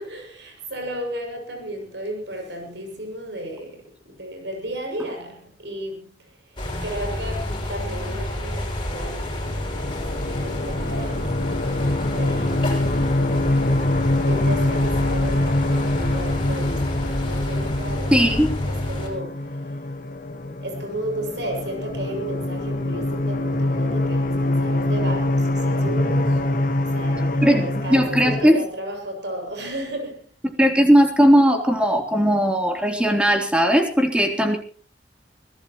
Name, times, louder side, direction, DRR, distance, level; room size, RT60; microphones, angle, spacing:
voice 1, 0.0-11.4 12.1-13.3 14.3-19.8 20.6-30.4 34.3-34.6, right 1 dB, 90° right, 7.0 m, -34 dB
sound 1, 6.6-19.1, left 1 dB, 30° left, 6.5 m, -29 dB
sound 2, 9.0-28.5, left 1 dB, 50° left, 1.7 m, -24 dB
voice 2, 18.1-18.5 27.4-27.6 27.9-28.6 30.6-34.6, equal, 5° right, 3.6 m, -17 dB
24.5 x 17.0 x 3.1 m
head